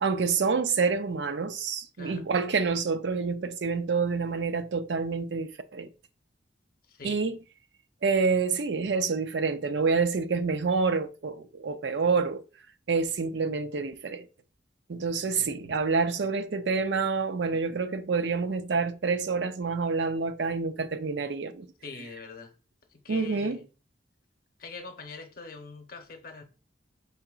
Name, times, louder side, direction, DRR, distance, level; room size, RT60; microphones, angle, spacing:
voice 1, 0.0-5.9 7.0-7.4 8.0-12.4 12.9-14.3 14.9-21.7 23.1-23.6, right 4 dB, 85° right, 0.5 m, -27 dB
voice 2, 6.9-7.2 21.8-22.5 22.9-23.6 24.6-26.4, left 4 dB, 55° left, 0.8 m, -43 dB
5.6 x 3.8 x 2.4 m
head